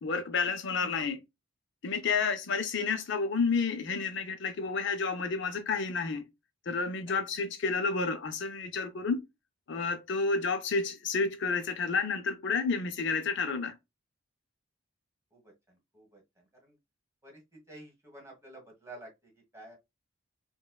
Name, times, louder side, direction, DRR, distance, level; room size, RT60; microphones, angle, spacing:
voice 1, 0.0-1.2 1.8-6.3 6.7-9.2 9.7-13.7, left 4 dB, 55° left, 0.5 m, -30 dB
voice 2, 17.2-19.8, right 1 dB, 15° right, 1.4 m, -50 dB
5.2 x 2.2 x 2.2 m
head